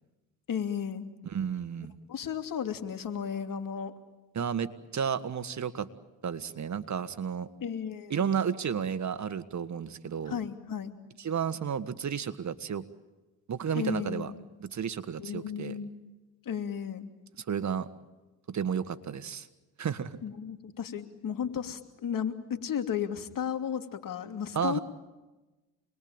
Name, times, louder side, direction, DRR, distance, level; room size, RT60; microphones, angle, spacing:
voice 1, 0.5-1.1 2.1-3.9 7.6-8.3 10.3-10.9 13.7-14.4 15.2-15.9 16.4-17.1 20.2-24.8, left 8 dB, 60° left, 7 dB, 2.9 m, -34 dB
voice 2, 1.2-1.9 4.3-5.9 6.2-7.5 8.1-10.4 11.2-12.9 13.5-14.3 14.6-15.7 17.4-17.9 18.5-19.5 19.8-20.2 24.5-24.8, right 7 dB, 50° right, 13 dB, 1.7 m, -32 dB
27.5 x 21.5 x 8.9 m, 1.1 s
cardioid pair, 80°, 37 cm